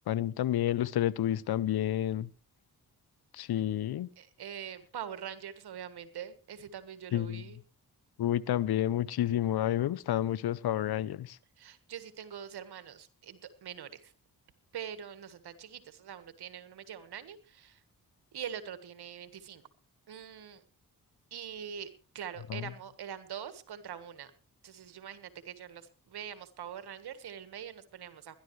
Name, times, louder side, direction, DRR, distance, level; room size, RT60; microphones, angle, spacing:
voice 1, 0.1-2.3 3.4-4.1 7.1-7.4 8.2-11.3 22.5-22.6, left 12 dB, 75° left, 0.7 m, -30 dB
voice 2, 4.2-7.6 11.6-14.1 14.7-17.8 18.3-19.6 20.1-20.6 21.3-21.9 22.2-24.3 24.6-28.4, right 9 dB, 80° right, 1.6 m, -43 dB
21.0 x 11.5 x 3.2 m
supercardioid pair, 45°, 38 cm